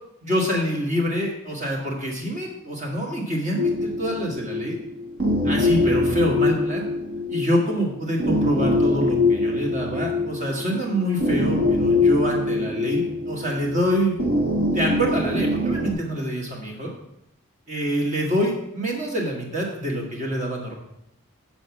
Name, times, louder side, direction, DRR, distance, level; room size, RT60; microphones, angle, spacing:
voice 1, 0.2-4.8 5.4-6.9 7.3-14.2 14.7-16.9 17.7-20.8, equal, 35° right, -1 dB, 1.7 m, -26 dB
sound 1, 3.6-15.9, left 2 dB, 55° right, 1.4 m, -23 dB
7.8 x 4.4 x 6.0 m, 0.80 s
head